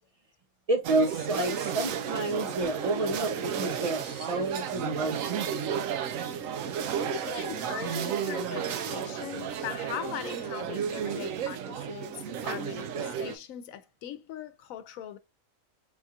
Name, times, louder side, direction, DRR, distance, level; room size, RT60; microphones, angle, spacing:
voice 1, 0.7-5.3, right 2 dB, 65° right, 0.3 m, -29 dB
sound 1, 0.8-13.4, right 8 dB, 80° right, 1.0 m, -33 dB
voice 2, 7.1-15.2, left 10 dB, 85° left, 1.0 m, -40 dB
4.8 x 2.4 x 2.6 m
omnidirectional pair, 1.4 m